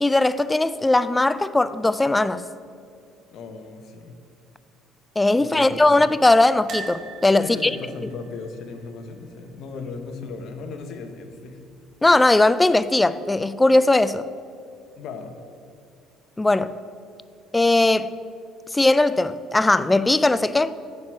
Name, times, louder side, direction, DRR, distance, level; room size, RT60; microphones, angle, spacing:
voice 1, 0.0-2.4 5.2-7.7 12.0-14.3 16.4-16.7 17.5-18.1 18.7-20.7, left 2 dB, 10° left, 0.3 m, -19 dB
voice 2, 3.3-4.1 5.4-6.1 7.4-11.6 15.0-15.4, left 4 dB, 65° left, 1.0 m, -37 dB
sound 1, 6.7-9.7 10.0-10.2 10.5-10.6 11.8-12.3 12.8-12.9, right 4 dB, 60° right, 1.4 m, -41 dB
9.6 x 4.6 x 6.3 m
cardioid pair, 110°, 0 cm